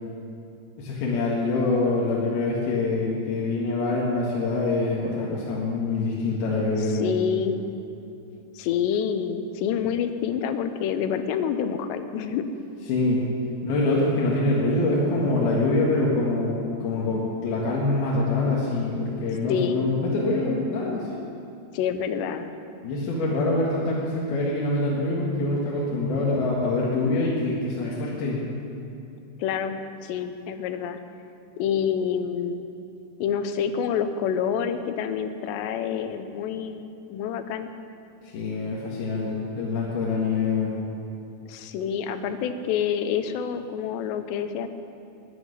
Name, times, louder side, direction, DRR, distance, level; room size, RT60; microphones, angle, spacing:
voice 1, 0.8-7.2 12.9-13.2 13.6-21.1 22.8-28.4 38.3-40.7, left 2 dB, 65° left, -5 dB, 3.5 m, -25 dB
voice 2, 6.8-7.6 8.5-12.5 19.5-19.9 21.7-22.5 29.4-31.0 31.6-32.7 33.2-37.7 41.5-44.7, left 8 dB, 85° left, 9 dB, 3.0 m, -27 dB
12.5 x 10.0 x 9.7 m, 2.7 s
omnidirectional pair, 4.9 m